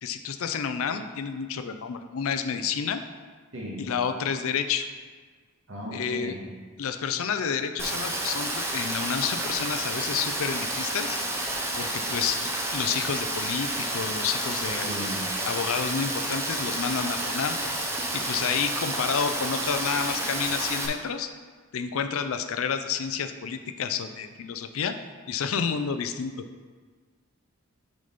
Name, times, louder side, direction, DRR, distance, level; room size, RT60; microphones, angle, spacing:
voice 1, 0.0-3.0 3.8-4.9 5.9-6.4 6.8-11.2 11.8-12.4 12.7-14.9 15.5-17.6 18.1-21.3 21.7-25.0 25.3-26.5, left 6 dB, 70° left, 8 dB, 0.4 m, -29 dB
voice 2, 3.5-3.9 5.7-6.5 14.8-15.3, equal, 60° right, -3 dB, 1.5 m, -36 dB
Rain, 7.8-20.9, right 1 dB, 10° right, 0.6 m, -30 dB
6.5 x 4.1 x 5.1 m, 1.5 s
head